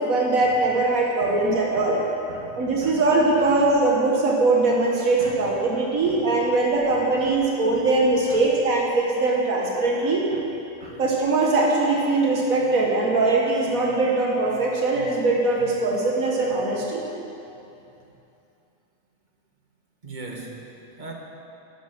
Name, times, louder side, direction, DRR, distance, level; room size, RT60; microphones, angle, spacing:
voice 1, 0.0-2.0 2.6-10.3 11.0-17.0, right 2 dB, 85° right, -2 dB, 1.8 m, -21 dB
voice 2, 20.0-20.5 21.0-21.1, right 2 dB, 35° right, 0 dB, 1.7 m, -39 dB
12.5 x 11.5 x 6.1 m, 2.8 s
omnidirectional pair, 1.4 m